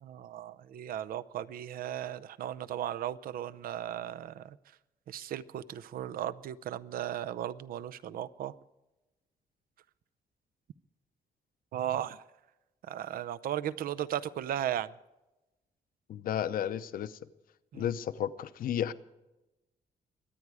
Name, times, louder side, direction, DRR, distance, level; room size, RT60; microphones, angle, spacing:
voice 1, 0.0-4.6 5.1-8.5 11.7-12.2 12.9-14.9 17.7-17.9, right 11 dB, 75° right, 15 dB, 0.6 m, -36 dB
voice 2, 16.1-17.1 17.7-18.9, left 10 dB, 70° left, 13 dB, 0.7 m, -32 dB
23.0 x 9.5 x 4.8 m, 1.0 s
cardioid pair, 140°, 15 cm